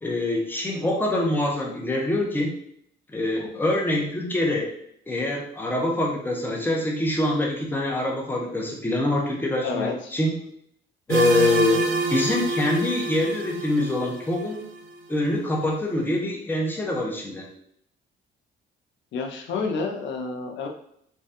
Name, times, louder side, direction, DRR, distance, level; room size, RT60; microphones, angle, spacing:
voice 1, 0.0-2.5 3.1-4.7 5.1-10.4 11.1-11.8 12.1-14.7 15.1-17.5, left 1 dB, 10° left, -1 dB, 0.7 m, -25 dB
voice 2, 9.6-10.1 19.1-20.7, left 4 dB, 70° left, 2 dB, 0.5 m, -30 dB
sound 1, 11.1-14.8, right 3 dB, 80° right, 0.6 m, -27 dB
3.2 x 2.2 x 2.8 m, 0.71 s
cardioid pair, 90°, 20 cm